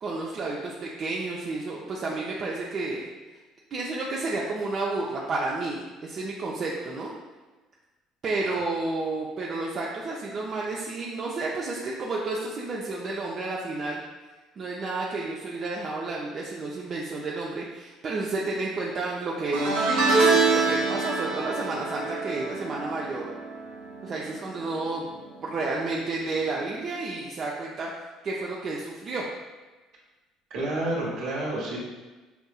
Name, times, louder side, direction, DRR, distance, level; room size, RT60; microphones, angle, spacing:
voice 1, 0.0-3.1 3.7-7.1 8.2-14.0 14.6-19.7 20.3-23.3 24.0-25.1 25.4-27.9 28.2-29.2, right 3 dB, 50° right, -3 dB, 0.5 m, -31 dB
sound 1, 19.5-24.9 25.2-25.6 26.8-26.9, right 3 dB, 90° right, 0.9 m, -25 dB
voice 2, 30.5-31.8, right 1 dB, 70° right, -4 dB, 1.3 m, -30 dB
5.6 x 2.6 x 2.3 m, 1.2 s
hypercardioid pair, 65°, 0 cm